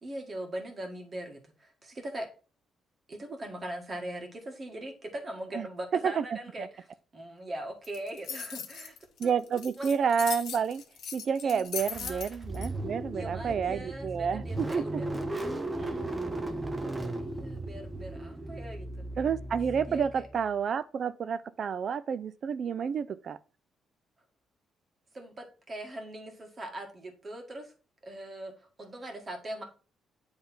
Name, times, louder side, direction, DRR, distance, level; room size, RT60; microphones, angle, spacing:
voice 1, 0.0-2.3 3.1-6.9 7.1-9.0 9.2-9.3 9.8-9.9 11.4-11.7 12.0-12.2 13.1-15.1 17.1-19.0 19.9-20.3 25.1-27.7 28.0-28.5 28.8-29.6, right 1 dB, 35° right, 1.7 m, -40 dB
sound 1, 7.8-12.7, left 7 dB, 70° left, 1.1 m, -39 dB
voice 2, 9.2-10.8 11.1-15.0 15.8-16.1 19.2-23.4, right 7 dB, 55° right, 0.4 m, -30 dB
Car / Engine starting, 11.8-20.5, right 1 dB, 20° right, 0.9 m, -36 dB
8.0 x 3.4 x 4.3 m
cardioid pair, 90°, 0 cm